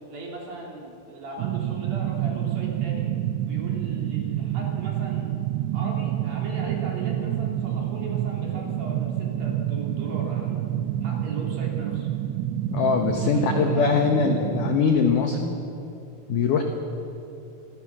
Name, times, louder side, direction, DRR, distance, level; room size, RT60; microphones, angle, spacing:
voice 1, 0.1-3.1 3.4-5.3 5.7-10.7 11.0-12.1 13.3-14.0, right 1 dB, 50° right, -2 dB, 5.2 m, -38 dB
sound 1, 1.4-14.8, right 12 dB, 80° right, 2.6 m, -28 dB
voice 2, 12.7-15.6 16.3-16.6, left 5 dB, 80° left, 4 dB, 1.8 m, -22 dB
27.5 x 18.0 x 6.3 m, 2.8 s
omnidirectional pair, 5.7 m